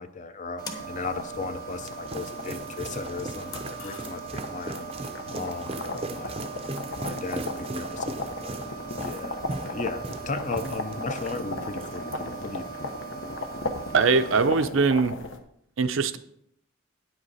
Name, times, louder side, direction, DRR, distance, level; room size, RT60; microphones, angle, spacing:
voice 1, 0.0-6.6 6.9-8.6 9.0-12.7, left 3 dB, 40° left, 10 dB, 0.7 m, -36 dB
sound 1, 0.6-14.5, right 5 dB, 20° left, 1.0 m, -40 dB
sound 2, 0.7-15.4, left 2 dB, 70° left, 0.9 m, -37 dB
sound 3, 1.6-11.4 11.7-12.1, right 2 dB, 30° right, 0.6 m, -38 dB
voice 2, 13.9-15.1 15.8-16.2, right 4 dB, 75° right, 10 dB, 0.6 m, -21 dB
9.5 x 8.0 x 4.1 m, 0.73 s
head